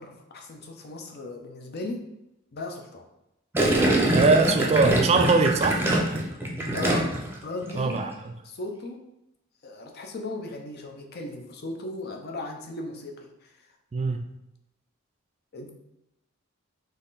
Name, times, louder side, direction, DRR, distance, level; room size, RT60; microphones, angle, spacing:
voice 1, 0.0-2.0 2.5-3.0 6.7-7.1 7.4-8.0 8.4-9.0 9.6-13.5 15.5-15.7, left 2 dB, 50° left, 3 dB, 0.7 m, -36 dB
Gurgling, 3.5-7.3 7.6-8.0, right 1 dB, 10° right, 0.7 m, -24 dB
voice 2, 4.1-5.8 7.8-8.1 13.9-14.2, right 4 dB, 30° right, 6 dB, 0.3 m, -21 dB
4.1 x 3.1 x 4.0 m, 0.88 s
head